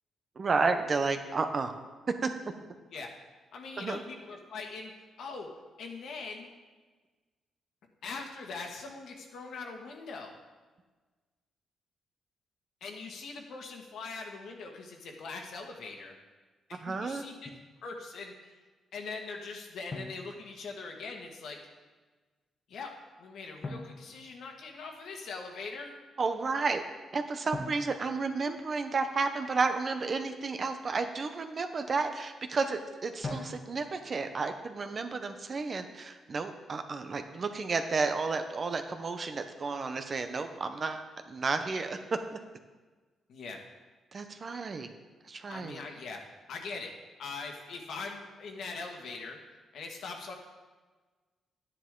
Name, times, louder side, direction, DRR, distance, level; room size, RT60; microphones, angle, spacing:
voice 1, 0.4-1.7 2.2-2.5 3.8-4.0 16.7-17.2 26.2-26.8 27.1-42.0 44.1-44.9 45.2-45.8, right 4 dB, 35° right, 7 dB, 0.8 m, -32 dB
voice 2, 3.5-4.9 5.2-5.5 5.8-6.5 8.0-10.4 12.8-16.1 16.7-17.5 17.8-18.5 18.9-21.6 22.7-22.9 23.2-26.0 43.3-43.6 45.5-46.2 46.5-46.9 47.2-49.4 49.7-50.3, left 4 dB, 70° left, 1 dB, 1.8 m, -41 dB
Drum, 17.5-17.7 19.9-21.1 23.6-25.0 27.5-29.2 33.2-34.2, left 2 dB, 30° left, 1.3 m, -43 dB
11.5 x 10.0 x 3.8 m, 1.3 s
cardioid pair, 130°, 0 cm